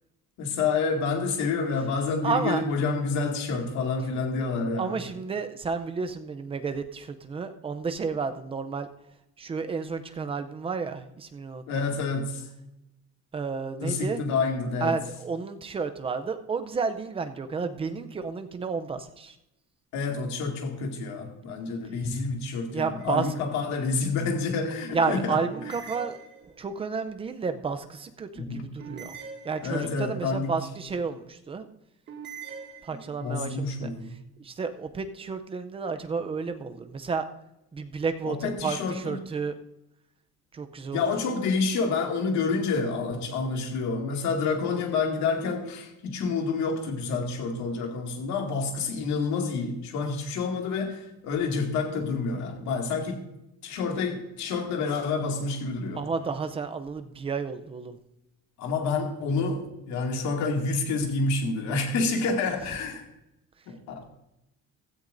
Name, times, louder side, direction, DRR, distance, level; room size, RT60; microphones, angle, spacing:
voice 1, 0.4-5.0 11.7-12.5 13.8-14.9 19.9-25.4 28.4-28.7 29.6-30.6 33.2-34.0 38.2-39.2 40.9-53.2 53.6-56.1 58.6-63.0 63.7-64.1, left 4 dB, 60° left, 2.2 m, -28 dB
voice 2, 2.2-2.6 4.8-8.9 9.4-11.6 13.3-14.2 14.8-19.4 22.7-23.3 24.9-29.2 29.4-31.7 32.8-33.9 34.4-37.2 37.7-39.5 40.5-41.1 56.0-58.0, right 5 dB, 15° right, 0.5 m, -31 dB
sound 1, 23.0-23.6 25.5-26.8 28.8-30.1 32.1-33.4, right 6 dB, 35° right, 2.1 m, -43 dB
16.0 x 13.5 x 2.6 m
cardioid pair, 180°, 32 cm